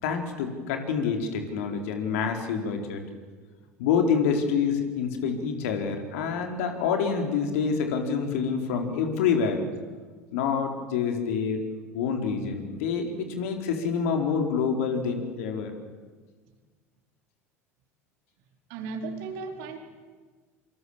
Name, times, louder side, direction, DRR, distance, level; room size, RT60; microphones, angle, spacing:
voice 1, 0.0-3.0 3.8-9.6 10.3-11.6 11.9-15.7, left 6 dB, 65° left, 4 dB, 4.1 m, -27 dB
voice 2, 18.7-19.8, right 4 dB, 60° right, 4 dB, 4.1 m, -35 dB
27.0 x 26.0 x 7.4 m, 1.5 s
figure-of-eight pair, 70°, 8 cm